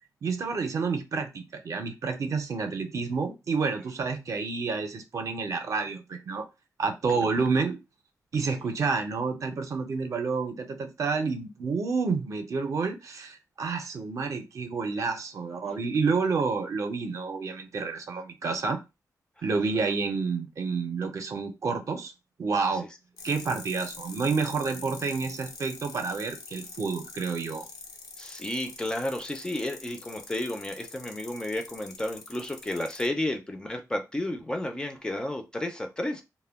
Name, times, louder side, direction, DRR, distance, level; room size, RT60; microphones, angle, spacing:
voice 1, 0.2-6.4 6.8-7.8 8.3-18.8 19.4-22.1 22.4-22.8 23.2-27.6, right 4 dB, 55° right, 0.5 m, -29 dB
sound 1, 23.2-33.1, left 4 dB, 85° left, 0.5 m, -45 dB
voice 2, 28.2-36.2, left 1 dB, 15° left, 0.3 m, -32 dB
2.2 x 2.1 x 3.4 m
wide cardioid pair, 150°, 6 cm